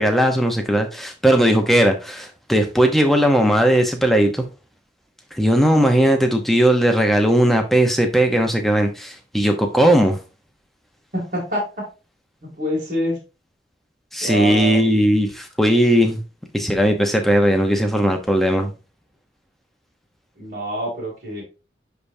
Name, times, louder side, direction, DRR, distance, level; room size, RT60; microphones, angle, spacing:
voice 1, 0.0-4.4 5.4-10.2 14.1-16.2 16.5-18.7, equal, ahead, 0.8 m, -17 dB
voice 2, 11.1-11.6 12.4-13.2 14.2-14.9 20.4-21.4, equal, 45° right, 2.7 m, -26 dB
10.0 x 3.4 x 2.7 m
head